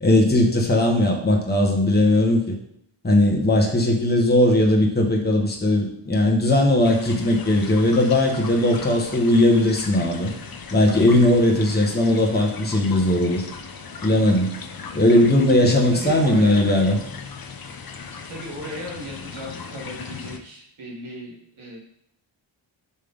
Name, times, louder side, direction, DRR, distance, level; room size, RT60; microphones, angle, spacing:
voice 1, 0.0-2.6 3.0-10.3 10.7-13.5 14.0-14.5 14.9-17.0, left 1 dB, 20° left, 0 dB, 1.2 m, -18 dB
Rain with Thunder and Crow window atmo, 6.8-20.4, left 5 dB, 45° left, 0.7 m, -38 dB
voice 2, 15.9-16.7 18.3-21.8, equal, 85° right, -3 dB, 2.0 m, -36 dB
5.6 x 3.3 x 5.1 m, 0.72 s
cardioid pair, 60°, 49 cm